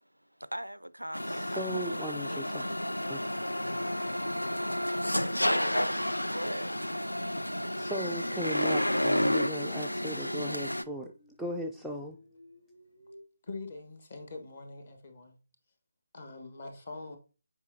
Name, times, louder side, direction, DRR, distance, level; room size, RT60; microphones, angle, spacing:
voice 1, 0.0-2.4 5.7-6.0 6.3-6.8 10.1-10.2, right 1 dB, 85° right, 0.4 m, -41 dB
sound 1, 1.1-10.8, left 1 dB, 80° left, 0.4 m, -31 dB
voice 2, 1.3-2.7 3.1-3.2 7.8-11.1 11.4-12.2, equal, ahead, 0.4 m, -37 dB
sound 2, 7.2-13.2, left 1 dB, 65° left, 1.6 m, -55 dB
voice 3, 13.4-15.4 16.1-17.2, left 3 dB, 40° left, 1.4 m, -43 dB
8.0 x 5.0 x 2.7 m
figure-of-eight pair, 150°, 0 cm